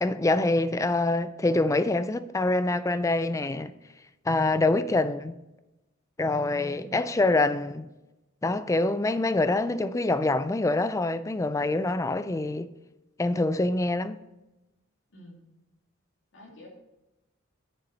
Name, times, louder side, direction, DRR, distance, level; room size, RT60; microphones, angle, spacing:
voice 1, 0.0-3.7 4.3-5.4 6.2-7.9 8.4-12.7 13.2-14.2, left 2 dB, 15° left, 0.4 m, -25 dB
voice 2, 6.5-7.1 15.1-15.4 16.3-16.7, left 1 dB, 60° left, 2.4 m, -49 dB
8.7 x 7.1 x 4.0 m
head